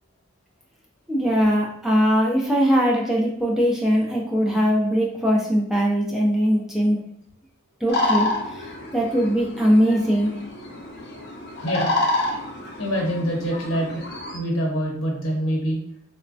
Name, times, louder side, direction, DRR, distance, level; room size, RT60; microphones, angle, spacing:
voice 1, 1.1-7.0 7.8-8.3 8.9-10.3, equal, ahead, -3 dB, 0.3 m, -20 dB
sound 1, 7.9-14.4, left 2 dB, 50° left, 0.6 m, -28 dB
voice 2, 11.6-11.9 12.8-14.0 14.3-15.8, equal, 80° left, 0 dB, 0.8 m, -25 dB
3.1 x 2.1 x 2.6 m, 0.66 s
head